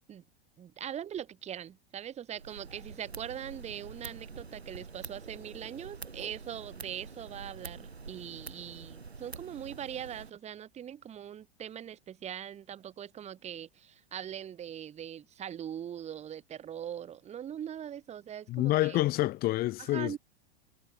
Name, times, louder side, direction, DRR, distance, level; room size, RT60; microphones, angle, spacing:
voice 1, 0.6-19.0 19.8-20.2, right 9 dB, 20° right, 1.2 m, -41 dB
sound 1, 2.3-10.3, right 4 dB, 85° right, 5.0 m, -46 dB
voice 2, 18.5-20.2, left 17 dB, 30° left, 0.7 m, -28 dB
figure-of-eight pair, 95°, 31 cm